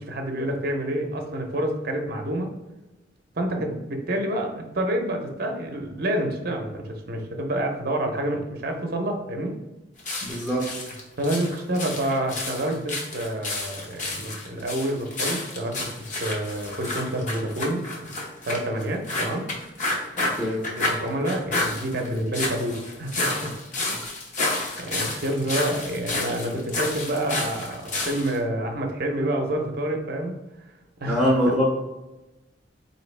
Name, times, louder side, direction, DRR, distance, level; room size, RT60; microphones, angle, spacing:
voice 1, 0.0-2.6 3.4-9.6 11.2-18.1 18.4-19.5 20.8-23.5 24.4-30.4 31.0-31.3, right 1 dB, 50° right, 4 dB, 0.6 m, -28 dB
sound 1, 10.0-28.4, left 2 dB, 40° left, 0.7 m, -30 dB
voice 2, 10.2-10.7 20.1-20.7 23.9-24.0 31.1-31.7, equal, ahead, -6 dB, 0.6 m, -23 dB
4.3 x 2.7 x 3.2 m, 1.0 s
head